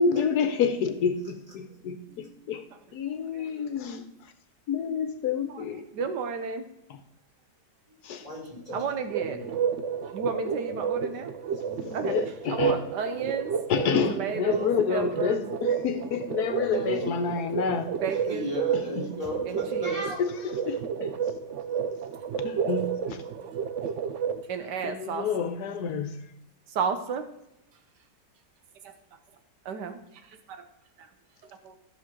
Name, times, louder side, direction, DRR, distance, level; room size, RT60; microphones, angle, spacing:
voice 1, 0.0-2.6 2.9-4.1 4.7-5.9 8.0-8.2 11.8-12.8 13.7-17.9 19.0-19.1 20.2-21.1 22.4-23.2 24.8-26.2, left 6 dB, 75° left, 1.3 m, -28 dB
voice 2, 2.0-2.5 7.9-8.8 9.2-9.6 9.9-10.1 10.7-11.2 11.6-12.1 12.4-13.0 16.5-17.2 17.5-20.2, left 1 dB, 20° right, 4.6 m, -38 dB
voice 3, 3.3-3.7 5.3-5.6 5.9-6.6 8.7-9.4 10.1-11.3 11.9-12.1 12.5-13.5 14.1-15.4 17.9-18.5 19.5-20.0 24.5-25.5 26.7-27.2 28.8-28.9 29.6-30.7 31.0-31.1 31.5-31.8, right 6 dB, 80° right, 1.5 m, -33 dB
sound 1, 9.1-24.4, right 7 dB, 60° right, 0.8 m, -31 dB
14.0 x 6.4 x 3.7 m
omnidirectional pair, 1.8 m